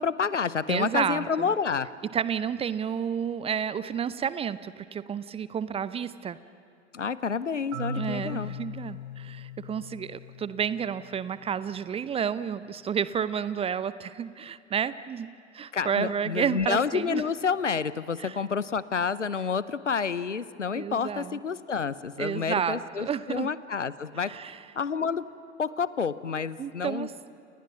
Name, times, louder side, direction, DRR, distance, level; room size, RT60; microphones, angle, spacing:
voice 1, 0.0-1.9 6.9-8.5 15.7-24.3 24.7-25.3 25.6-27.1, left 6 dB, 85° left, 17 dB, 0.8 m, -29 dB
voice 2, 0.7-1.5 2.1-6.4 7.9-17.2 18.2-18.4 20.7-21.4 22.2-23.5 24.2-24.6 26.6-27.1, right 8 dB, 15° right, 15 dB, 0.6 m, -31 dB
Marimba xylophone, 7.7-11.6, left 3 dB, 65° right, 5.1 m, -39 dB
29.5 x 29.5 x 5.9 m, 2.4 s
figure-of-eight pair, 85°, 36 cm